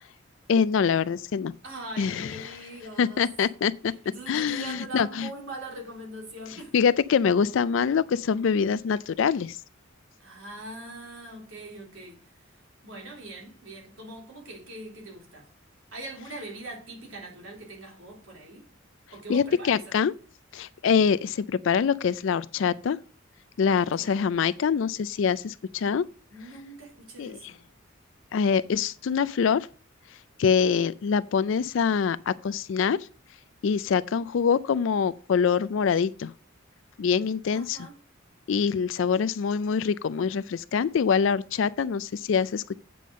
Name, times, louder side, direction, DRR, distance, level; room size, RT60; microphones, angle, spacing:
voice 1, 0.5-1.5 2.0-2.3 3.0-3.9 4.3-5.3 6.7-9.6 19.3-20.1 20.5-23.0 23.6-26.0 27.2-27.3 28.3-29.7 30.4-33.0 33.6-36.3 37.0-37.8 38.5-42.7, left 6 dB, 65° left, 0.4 m, -24 dB
voice 2, 1.6-3.3 3.9-6.8 10.2-12.6 12.8-15.5 15.9-18.7 19.1-20.0 23.7-24.2 26.3-27.6 37.5-38.0, right 2 dB, 75° right, 3.6 m, -42 dB
8.5 x 5.3 x 6.3 m
head